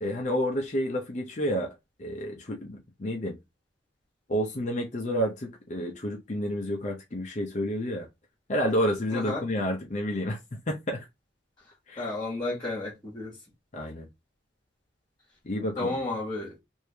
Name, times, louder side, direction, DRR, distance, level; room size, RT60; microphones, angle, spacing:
voice 1, 0.0-1.7 2.0-3.4 4.3-8.1 8.5-10.4 10.7-11.0 11.9-12.1 13.7-14.1 15.4-16.0, equal, 40° left, 0.6 m, -30 dB
voice 2, 9.1-9.4 12.0-13.3 15.8-16.5, left 2 dB, 20° left, 1.3 m, -32 dB
3.2 x 2.6 x 3.3 m
head